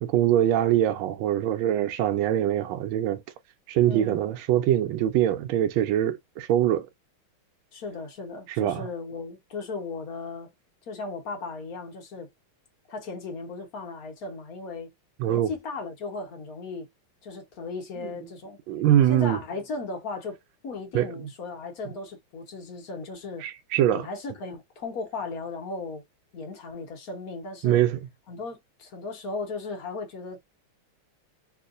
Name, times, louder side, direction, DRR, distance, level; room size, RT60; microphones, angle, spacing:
voice 1, 0.0-3.2 3.7-6.9 8.5-8.9 15.2-15.5 18.0-18.1 18.7-19.4 20.9-21.3 23.4-24.1 27.6-28.0, right 11 dB, 75° right, 1.3 m, -23 dB
voice 2, 3.9-4.2 7.7-10.5 10.9-12.3 12.9-14.9 15.3-16.9 17.2-18.6 19.1-20.4 20.6-23.5 23.9-26.0 26.3-27.8 28.3-30.4, left 3 dB, 50° left, 1.4 m, -36 dB
3.6 x 2.5 x 2.5 m
omnidirectional pair, 2.4 m